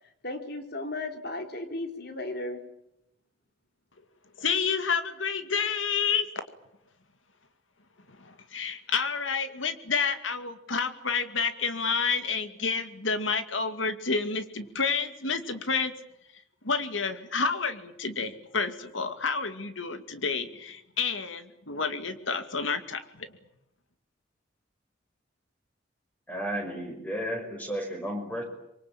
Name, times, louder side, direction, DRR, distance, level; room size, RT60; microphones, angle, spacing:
voice 1, 0.2-2.6, left 2 dB, 55° left, 6 dB, 3.5 m, -35 dB
voice 2, 4.4-6.3 8.2-15.9 16.6-23.3, left 5 dB, 80° left, 9 dB, 2.4 m, -29 dB
voice 3, 26.3-28.4, equal, 10° left, 4 dB, 5.6 m, -33 dB
25.5 x 23.5 x 8.8 m, 0.81 s
head